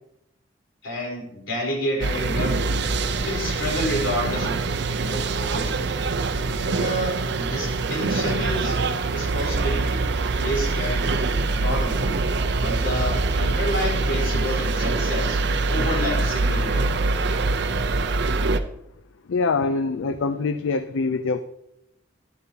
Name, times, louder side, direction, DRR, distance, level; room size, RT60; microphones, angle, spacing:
voice 1, 0.8-2.6 3.2-5.9 6.5-8.8 9.1-10.1 10.4-11.2 11.5-12.0 12.6-15.4 15.7-17.1, equal, 75° left, -2 dB, 4.2 m, -29 dB
sound 1, 2.0-18.6, right 3 dB, 60° right, 0.6 m, -24 dB
voice 2, 19.3-21.4, left 4 dB, 90° left, 10 dB, 0.5 m, -24 dB
12.0 x 11.5 x 2.9 m, 0.83 s
head